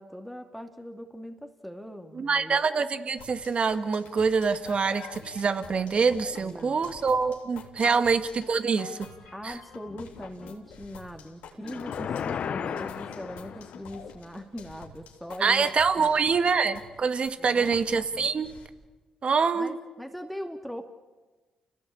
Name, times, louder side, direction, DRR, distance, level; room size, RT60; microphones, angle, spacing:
voice 1, 0.0-2.6 6.4-6.9 7.8-8.1 9.3-16.3 17.4-17.8 19.5-20.9, equal, ahead, 4 dB, 2.6 m, -41 dB
voice 2, 2.2-8.2 8.5-9.0 9.4-9.5 15.4-18.5 19.2-19.8, right 5 dB, 50° right, 9 dB, 1.9 m, -25 dB
sound 1, 3.2-18.7, left 6 dB, 80° left, 3.4 m, -47 dB
sound 2, 11.6-14.0, left 7 dB, 60° left, 0.8 m, -34 dB
30.0 x 17.0 x 8.6 m, 1.2 s
supercardioid pair, 50°, 3 cm